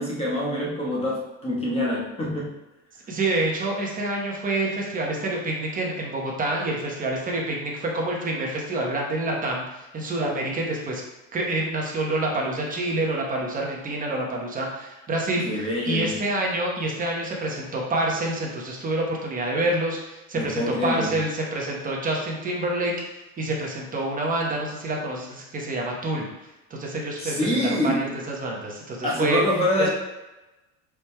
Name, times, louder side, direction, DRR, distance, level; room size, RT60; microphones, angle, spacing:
voice 1, 0.0-2.5 15.4-16.1 20.3-21.1 27.2-28.1 29.0-29.9, left 1 dB, 15° left, -5 dB, 1.1 m, -25 dB
voice 2, 3.1-11.0 11.3-15.4 15.9-22.9 23.4-26.3 26.7-29.4 29.8-29.9, right 2 dB, 25° right, -1 dB, 1.0 m, -27 dB
5.1 x 4.6 x 2.2 m, 1.1 s
cardioid pair, 140°, 36 cm